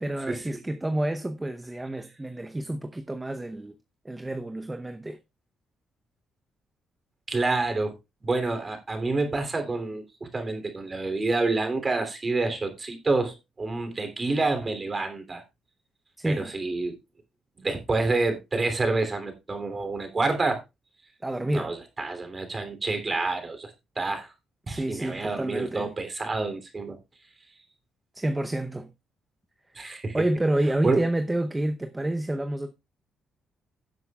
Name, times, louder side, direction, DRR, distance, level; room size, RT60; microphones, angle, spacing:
voice 1, 0.0-3.7 4.0-5.2 16.2-16.5 21.2-21.7 24.7-25.9 28.1-28.9 30.1-32.7, right 1 dB, 15° right, 0.8 m, -29 dB
voice 2, 7.3-8.0 8.2-15.4 16.2-17.0 17.6-20.6 21.5-24.3 24.7-27.0 29.7-30.2 30.8-31.0, right 3 dB, 30° right, 3.0 m, -28 dB
16.5 x 7.7 x 2.4 m
cardioid pair, 90°, 0 cm